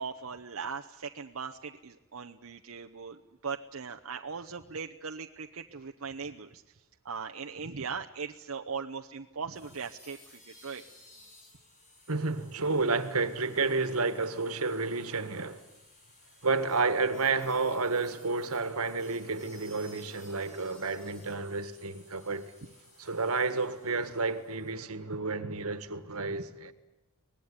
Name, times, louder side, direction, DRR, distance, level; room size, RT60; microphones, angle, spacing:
voice 1, 0.0-10.8 22.6-22.7, right 5 dB, 70° right, 0.8 m, -39 dB
sound 1, 9.5-24.7, left 2 dB, 35° left, 7.4 m, -58 dB
voice 2, 12.1-15.6 16.4-22.5 23.0-26.7, right 3 dB, 90° right, 1.7 m, -30 dB
25.0 x 19.5 x 9.7 m
head